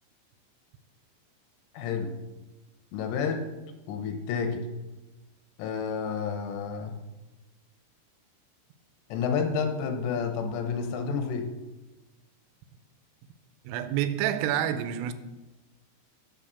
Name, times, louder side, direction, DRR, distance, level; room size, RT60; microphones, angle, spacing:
voice 1, 1.7-2.1 2.9-3.4 3.9-4.6 5.6-7.0 9.1-11.5, left 6 dB, 80° left, 3.4 m, -30 dB
voice 2, 13.6-15.1, right 10 dB, 85° right, 3.3 m, -28 dB
11.5 x 6.2 x 6.9 m
omnidirectional pair, 5.8 m